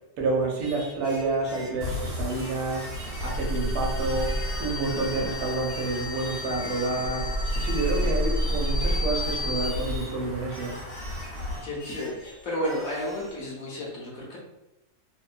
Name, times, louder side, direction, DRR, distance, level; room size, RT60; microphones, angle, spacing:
voice 1, 0.2-2.9 3.2-10.7, right 3 dB, 75° right, 0 dB, 1.1 m, -29 dB
Singing, 0.6-3.5 4.0-7.0 7.4-10.1 10.5-13.4, equal, 30° left, 0.4 m, -44 dB
sound 1, 1.8-11.6, left 1 dB, 45° right, 1.0 m, -37 dB
sound 2, 2.9-9.7, equal, 85° left, 1.2 m, -29 dB
voice 2, 11.6-14.4, equal, 65° left, -4 dB, 1.0 m, -32 dB
2.8 x 2.2 x 2.4 m, 0.95 s
omnidirectional pair, 1.7 m